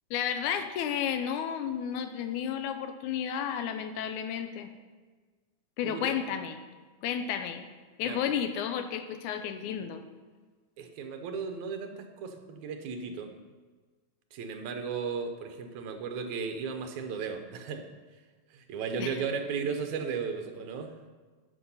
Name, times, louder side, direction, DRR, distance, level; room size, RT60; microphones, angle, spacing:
voice 1, 0.1-4.7 5.8-6.6 7.0-7.7 8.0-10.0 19.0-19.1, left 8 dB, 90° left, 8 dB, 2.1 m, -32 dB
voice 2, 5.8-6.2 8.0-8.2 10.8-13.3 14.3-17.8 18.5-20.9, right 5 dB, 75° right, 6 dB, 2.2 m, -35 dB
11.5 x 6.0 x 5.5 m, 1.4 s
omnidirectional pair, 3.4 m